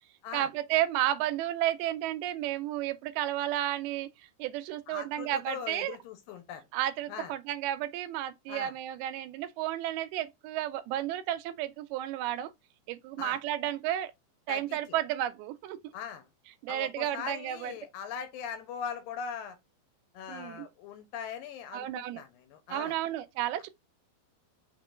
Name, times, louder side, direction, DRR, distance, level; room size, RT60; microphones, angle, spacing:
voice 1, 0.3-4.1 4.4-6.0 6.7-12.5 12.9-14.1 14.5-15.8 16.6-17.7 20.3-20.7 21.7-22.2 22.7-23.7, right 13 dB, 85° right, 2.4 m, -32 dB
voice 2, 4.9-6.7 7.1-7.3 8.5-8.7 13.2-13.4 14.5-15.0 15.9-16.3 16.7-19.6 20.1-23.0, left 7 dB, 80° left, 2.2 m, -40 dB
5.7 x 3.6 x 2.4 m
omnidirectional pair, 4.4 m